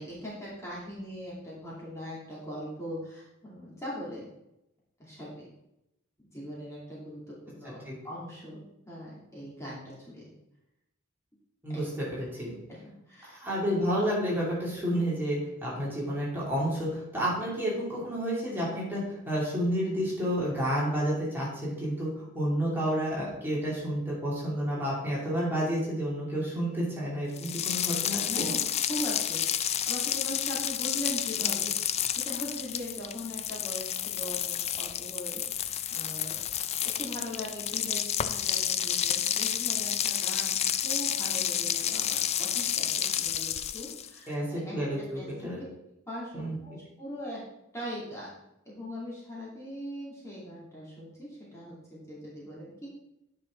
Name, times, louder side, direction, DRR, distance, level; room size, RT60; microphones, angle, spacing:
voice 1, 0.0-4.3 5.0-5.5 6.2-7.8 8.0-10.2 11.7-11.8 13.1-13.4 28.3-36.4 36.8-40.6 40.8-44.8 45.1-45.5 46.1-47.4 47.7-48.4 48.6-52.9, equal, 15° left, -7 dB, 2.6 m, -40 dB
voice 2, 11.6-12.5 13.3-22.1 22.3-28.5 44.3-45.6 46.3-46.5, equal, 10° right, -7 dB, 2.7 m, -30 dB
sound 1, 27.4-44.2, left 10 dB, 30° left, 0.3 m, -30 dB
9.5 x 5.7 x 3.8 m, 0.86 s
head